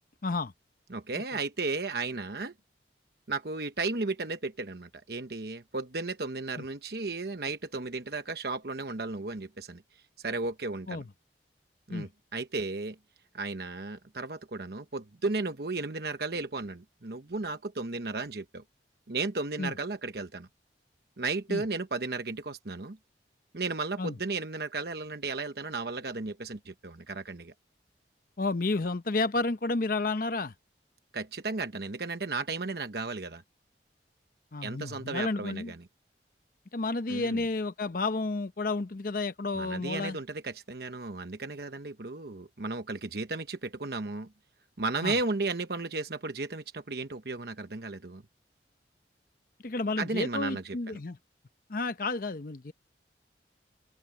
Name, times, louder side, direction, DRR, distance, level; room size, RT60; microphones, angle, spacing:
voice 1, 0.2-0.5 10.9-11.1 11.9-12.1 19.6-19.7 21.5-21.6 24.0-24.2 28.4-30.5 34.5-35.7 36.7-40.2 45.0-45.1 49.6-51.2 51.7-52.7, left 3 dB, 50° left, 0.8 m, -31 dB
voice 2, 0.9-2.5 3.3-11.0 11.9-13.0 13.3-18.6 19.1-20.5 21.2-23.0 23.5-27.5 31.1-33.4 34.6-35.8 37.1-37.4 39.5-44.3 44.8-48.2 50.0-51.0, right 3 dB, 60° right, 1.0 m, -34 dB
head